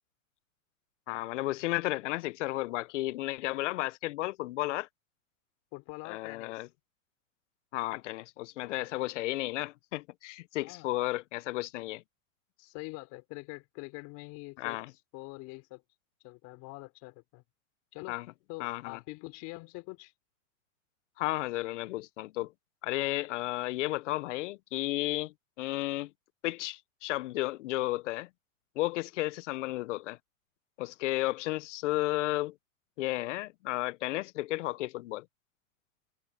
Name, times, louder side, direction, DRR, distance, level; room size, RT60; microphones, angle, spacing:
voice 1, 1.1-4.9 6.0-6.7 7.7-12.0 14.6-14.9 18.1-18.2 18.6-19.0 21.2-22.5 22.8-26.1 26.4-28.3 28.8-30.2 30.8-32.5 33.0-35.3, left 18 dB, 60° left, 0.8 m, -33 dB
voice 2, 5.7-6.7 10.6-10.9 12.6-14.8 15.1-15.8 16.2-17.4 17.9-18.2 18.5-20.1, left 26 dB, 45° left, 4.0 m, -44 dB
hypercardioid pair, 130°, 41 cm